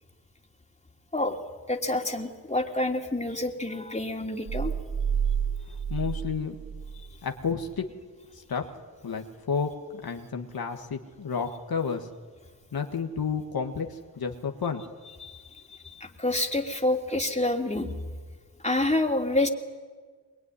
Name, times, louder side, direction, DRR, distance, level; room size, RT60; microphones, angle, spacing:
voice 1, 1.7-4.7 15.2-18.0 18.6-19.5, left 2 dB, 20° left, 3 dB, 3.0 m, -28 dB
sound 1, 4.5-7.2, right 7 dB, 65° right, 1.3 m, -30 dB
voice 2, 5.9-6.5 7.2-7.8 8.3-8.6 9.0-9.7 10.0-12.1 12.7-14.8, left 6 dB, 75° left, 4 dB, 1.7 m, -31 dB
22.5 x 22.0 x 9.8 m, 1.5 s
cardioid pair, 45°, 36 cm